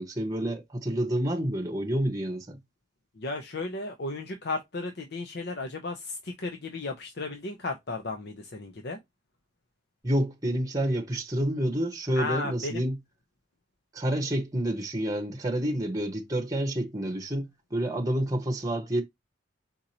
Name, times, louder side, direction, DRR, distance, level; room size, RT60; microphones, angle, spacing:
voice 1, 0.0-2.6 10.0-13.0 13.9-19.0, right 1 dB, 20° right, 0.9 m, -29 dB
voice 2, 3.2-9.0 12.1-12.8, left 3 dB, 55° left, 0.7 m, -34 dB
4.6 x 3.9 x 2.8 m
head